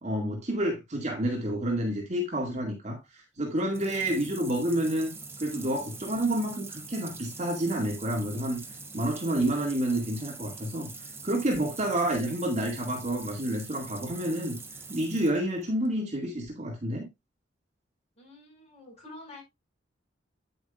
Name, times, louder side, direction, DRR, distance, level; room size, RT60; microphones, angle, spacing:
voice 1, 0.0-5.1 5.4-8.6 8.9-10.9 11.2-14.6 14.9-17.1, right 1 dB, 40° right, 2.1 m, -29 dB
sound 1, 3.5-15.9, right 3 dB, 15° right, 1.1 m, -44 dB
voice 2, 18.2-19.4, left 2 dB, 35° left, 5.7 m, -48 dB
9.5 x 7.9 x 2.4 m
head